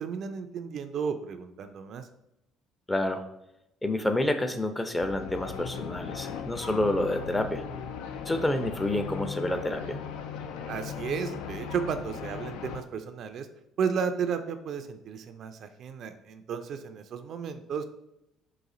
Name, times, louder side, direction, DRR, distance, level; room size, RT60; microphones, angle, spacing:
voice 1, 0.0-2.1 10.7-13.5 13.8-17.9, right 6 dB, 55° right, 9 dB, 0.4 m, -33 dB
voice 2, 2.9-3.2 3.8-7.6 8.3-10.0, left 1 dB, 15° left, 8 dB, 0.6 m, -28 dB
sound 1, 5.0-12.8, left 7 dB, 70° left, 0.3 m, -38 dB
4.1 x 2.6 x 3.7 m, 0.84 s
hypercardioid pair, 55°, 0 cm